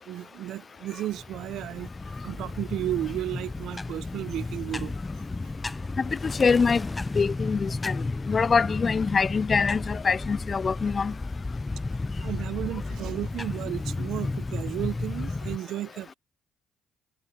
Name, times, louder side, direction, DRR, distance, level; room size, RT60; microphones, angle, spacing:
voice 1, 0.1-1.9 2.2-4.9 12.2-16.1, right 13 dB, 70° right, 0.9 m, -33 dB
sound 1, 1.1-15.6, left 3 dB, 25° left, 0.8 m, -33 dB
voice 2, 6.2-6.9 7.2-8.0 8.3-11.1, left 5 dB, 40° left, 0.3 m, -24 dB
hypercardioid pair, 55°, 0 cm